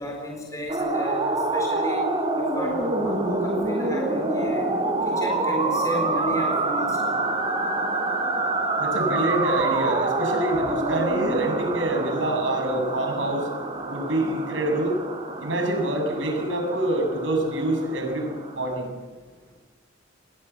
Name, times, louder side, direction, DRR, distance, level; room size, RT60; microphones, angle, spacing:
voice 1, 0.0-2.0 2.4-4.7 5.1-7.2, equal, 15° left, 1 dB, 4.2 m, -32 dB
sound 1, 0.7-18.8, right 2 dB, 30° right, 3.7 m, -27 dB
voice 2, 8.8-13.5 13.9-14.9 15.4-19.0, right 1 dB, 80° right, 3 dB, 7.4 m, -26 dB
29.0 x 21.5 x 8.4 m, 1.4 s
head